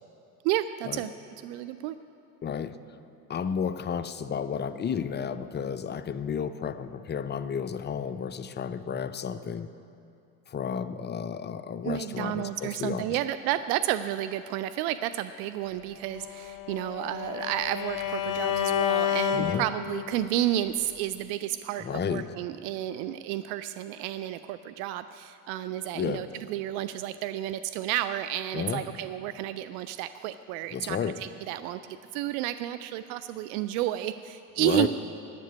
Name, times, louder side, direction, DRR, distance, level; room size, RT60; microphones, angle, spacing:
voice 1, 0.4-1.1 1.4-2.0 11.8-34.9, right 13 dB, 65° right, 12 dB, 0.5 m, -31 dB
voice 2, 2.4-2.8 3.3-9.7 10.5-13.2 19.3-19.6 21.8-22.3 25.9-26.3 28.5-28.8 30.7-31.2 34.6-34.9, left 7 dB, 25° left, 11 dB, 0.5 m, -32 dB
Bowed string instrument, 16.1-20.3, left 10 dB, 45° left, 0.9 m, -30 dB
10.0 x 7.4 x 9.3 m, 2.7 s
hypercardioid pair, 70°, 46 cm